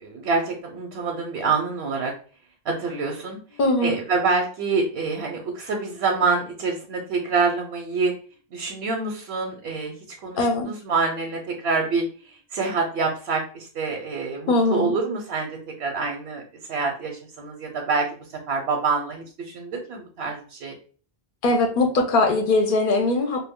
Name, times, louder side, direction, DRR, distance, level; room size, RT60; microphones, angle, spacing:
voice 1, 0.0-2.1 2.6-8.1 8.5-9.9 10.2-16.4 16.7-18.1 18.5-20.7, right 4 dB, 85° right, 2 dB, 0.8 m, -26 dB
voice 2, 3.6-4.0 10.4-10.7 14.5-14.9 21.4-23.5, left 2 dB, 60° left, 4 dB, 0.7 m, -21 dB
2.3 x 2.1 x 3.5 m, 0.41 s
omnidirectional pair, 1.0 m